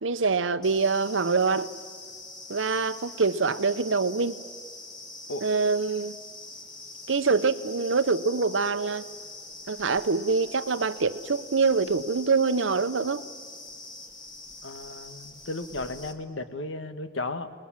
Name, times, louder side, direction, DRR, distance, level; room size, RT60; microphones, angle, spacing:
voice 1, 0.0-1.7 2.5-4.4 5.4-6.2 7.1-9.0 9.7-13.2, right 4 dB, 85° right, 0.9 m, -25 dB
sound 1, 0.6-16.1, left 2 dB, 25° left, 2.0 m, -44 dB
voice 2, 14.6-17.5, left 2 dB, 85° left, 1.4 m, -35 dB
29.0 x 21.0 x 7.4 m
head